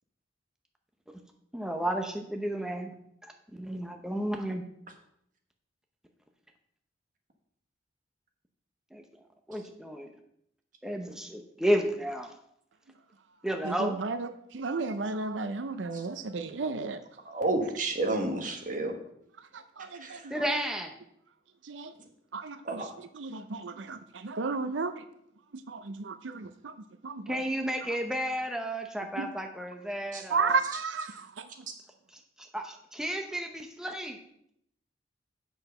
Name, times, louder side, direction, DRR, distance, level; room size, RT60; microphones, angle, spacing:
voice 1, 1.5-2.9 3.2-4.6 8.9-9.0 9.5-10.1 10.8-12.3 13.4-14.0 20.3-20.9 27.3-30.6 32.5-34.2, equal, 5° right, 3 dB, 0.7 m, -32 dB
voice 2, 13.6-17.0 19.5-20.3 21.6-21.9 22.3-22.6 23.2-25.0 25.7-26.7 27.0-27.4 29.2-29.3 30.3-31.4, right 4 dB, 85° right, 11 dB, 0.5 m, -33 dB
voice 3, 17.2-19.0 20.0-20.3 22.0-22.1 22.6-22.9 30.1-30.2, right 2 dB, 45° right, 3 dB, 1.4 m, -31 dB
7.9 x 6.3 x 5.4 m, 0.74 s
head